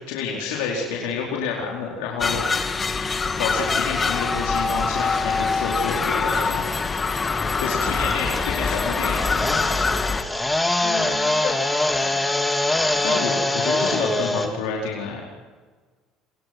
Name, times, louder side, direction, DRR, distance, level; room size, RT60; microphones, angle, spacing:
voice 1, 0.1-2.7 3.4-6.7 7.6-9.7 13.0-15.2, left 5 dB, 80° left, -2 dB, 4.5 m, -29 dB
sound 1, 2.2-10.2, left 4 dB, 30° left, 2.2 m, -24 dB
sound 2, 3.7-14.5, left 2 dB, 10° left, 3.7 m, -26 dB
voice 2, 7.3-8.0 10.8-11.6 12.0-12.2 12.9-13.4, left 6 dB, 60° left, 6 dB, 6.4 m, -36 dB
30.0 x 25.0 x 6.2 m, 1.4 s
supercardioid pair, 80°, 0 cm